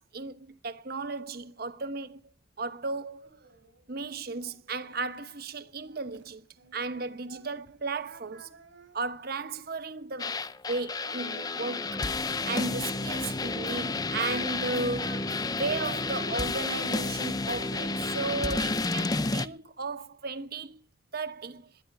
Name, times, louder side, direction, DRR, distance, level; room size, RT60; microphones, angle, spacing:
voice 1, 0.0-3.3 3.9-6.4 6.7-8.5 8.9-12.1 12.4-15.2 15.6-20.8 21.1-21.7, right 3 dB, 50° right, 1.0 m, -35 dB
Singing, 3.2-7.7 8.0-10.4 10.8-13.4 14.0-15.3 15.9-17.9 18.3-18.9, right 3 dB, 70° right, 3.9 m, -54 dB
sound 1, 10.2-19.5, left 3 dB, 20° left, 0.6 m, -31 dB
20.0 x 10.0 x 4.7 m
head